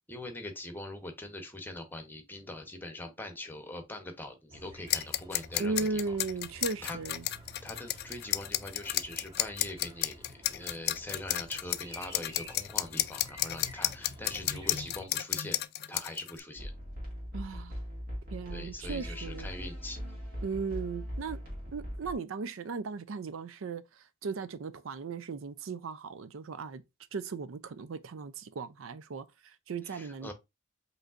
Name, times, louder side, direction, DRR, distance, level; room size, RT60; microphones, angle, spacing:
voice 1, 0.1-6.0 6.8-7.0 7.6-15.6 15.9-16.7 18.5-20.0 29.8-30.3, left 1 dB, 10° left, 0.9 m, -42 dB
sound 1, 4.5-15.0, equal, 25° right, 1.3 m, -50 dB
sound 2, 4.9-16.4, left 14 dB, 50° left, 0.3 m, -32 dB
voice 2, 5.6-7.3 17.3-17.8 18.3-19.5 20.4-21.4 21.7-26.8 27.1-30.3, right 4 dB, 85° right, 0.5 m, -37 dB
sound 3, 16.6-22.1, equal, 45° right, 2.0 m, -40 dB
5.2 x 3.1 x 2.5 m
head